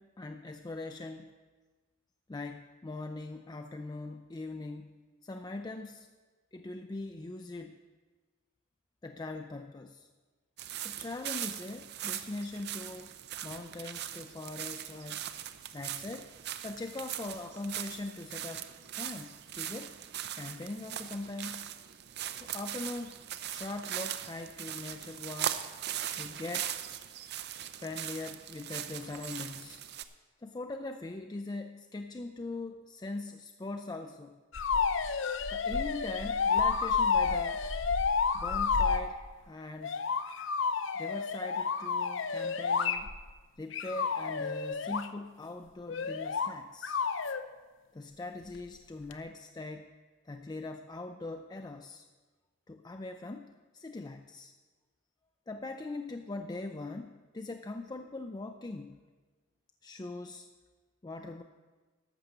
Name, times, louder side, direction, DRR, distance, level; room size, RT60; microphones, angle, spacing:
voice 1, 0.0-1.3 2.3-4.9 5.2-6.1 6.5-7.8 9.0-10.1 10.8-13.1 13.4-15.3 15.7-16.3 16.6-20.0 20.3-21.7 22.4-23.2 23.5-25.7 26.1-26.8 27.8-29.8 30.4-34.4 35.5-37.7 38.3-40.0 40.9-43.1 43.6-47.0 47.9-49.9 50.2-52.1 52.7-54.5 55.5-59.0 59.8-60.5 61.0-61.4, left 2 dB, 20° left, 6 dB, 0.4 m, -41 dB
sound 1, 10.6-30.0, right 11 dB, 55° right, 0.5 m, -40 dB
sound 2, 34.5-39.1 39.8-43.3 43.7-45.1 45.9-46.5 46.8-47.4 49.1-49.2, left 5 dB, 65° left, 0.6 m, -30 dB
12.0 x 7.0 x 6.6 m, 1.3 s
head